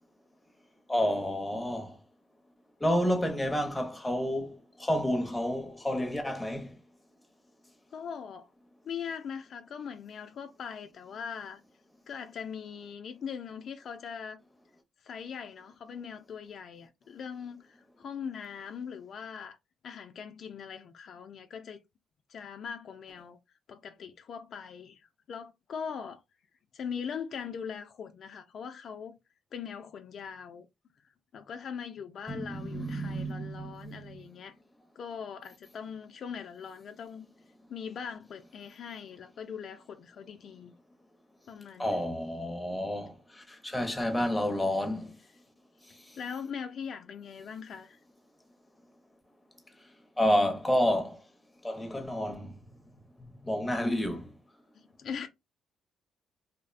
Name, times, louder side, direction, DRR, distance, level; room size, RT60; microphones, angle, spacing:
voice 1, 0.9-1.9 2.8-6.7 32.3-34.2 41.8-43.1 43.5-45.1 50.2-51.2 51.6-52.5 53.4-54.3, equal, 10° left, 0.6 m, -30 dB
voice 2, 7.9-8.5 8.8-11.6 12.1-14.4 15.0-19.6 19.8-21.8 22.3-23.4 23.7-25.0 25.3-26.2 26.7-29.1 29.5-30.7 31.3-34.6 35.0-37.3 37.7-40.7 41.5-42.1 46.2-48.0 55.0-55.3, left 7 dB, 60° left, 0.3 m, -41 dB
2.5 x 2.1 x 2.4 m
cardioid pair, 90°, 0 cm